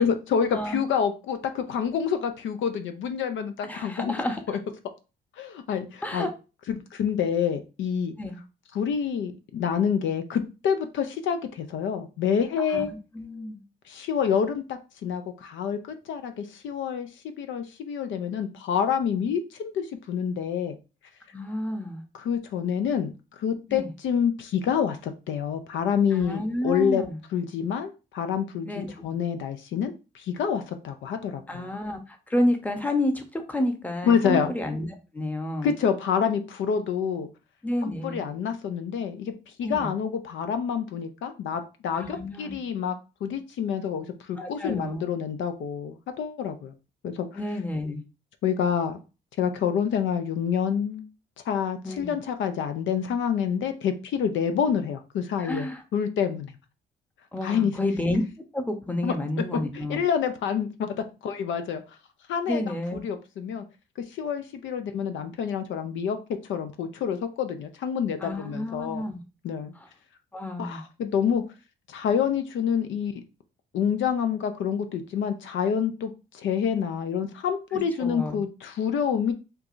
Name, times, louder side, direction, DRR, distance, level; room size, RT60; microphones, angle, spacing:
voice 1, 0.0-4.1 4.5-4.6 5.4-6.3 6.7-8.1 8.7-12.9 13.9-17.1 17.4-20.8 22.1-27.0 27.3-28.7 29.0-31.7 34.0-34.5 35.6-37.3 37.8-39.3 39.6-42.9 43.2-46.7 47.0-47.3 48.4-49.0 49.4-51.0 51.5-55.7 55.9-56.5 57.4-57.8 59.0-59.1 59.7-61.0 61.2-61.8 62.3-62.6 62.9-63.6 64.1-66.2 66.5-69.0 69.4-69.7 70.6-71.4 71.9-73.2 73.7-79.3, left 7 dB, 75° left, 8 dB, 0.5 m, -27 dB
voice 2, 0.5-0.8 3.6-4.4 6.0-6.3 8.2-8.4 12.6-13.6 21.3-22.0 23.7-23.9 26.1-27.2 28.6-29.1 31.5-34.9 35.1-35.7 37.6-38.2 39.6-39.9 41.9-42.6 44.4-45.1 47.3-48.0 51.8-52.1 55.4-55.8 57.3-58.2 58.5-60.0 62.5-63.0 68.2-69.2 69.7-69.9 70.3-70.8 77.7-78.4, left 1 dB, 10° left, 5 dB, 0.8 m, -30 dB
4.6 x 2.4 x 2.5 m, 0.31 s
cardioid pair, 90°, 20 cm